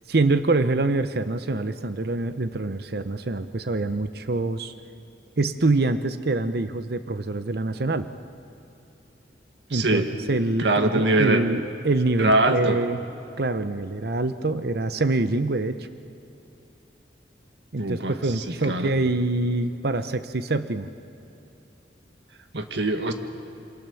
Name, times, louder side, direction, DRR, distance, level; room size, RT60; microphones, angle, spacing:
voice 1, 0.1-4.7 5.4-8.1 9.7-10.0 10.3-13.0 13.4-15.9 17.7-20.9, right 2 dB, 60° right, 11 dB, 0.8 m, -25 dB
voice 2, 9.7-10.1 10.6-11.4 12.2-12.8 17.8-18.9 22.5-23.1, right 2 dB, 80° right, 6 dB, 1.8 m, -23 dB
27.5 x 25.0 x 7.1 m, 2.8 s
head